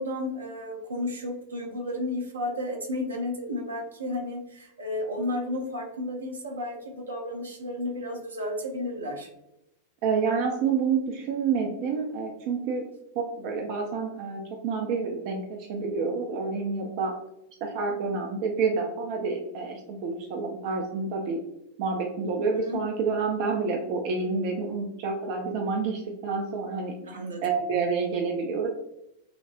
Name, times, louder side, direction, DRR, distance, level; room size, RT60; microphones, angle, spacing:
voice 1, 0.0-9.3 22.5-22.8 27.0-27.4, left 1 dB, 75° right, 1 dB, 0.7 m, -32 dB
voice 2, 10.0-12.9 13.2-17.2 17.6-21.4 21.8-26.9 27.4-28.7, right 5 dB, 45° right, 1 dB, 0.4 m, -28 dB
6.0 x 2.0 x 2.4 m, 0.87 s
figure-of-eight pair, 90°, 0 cm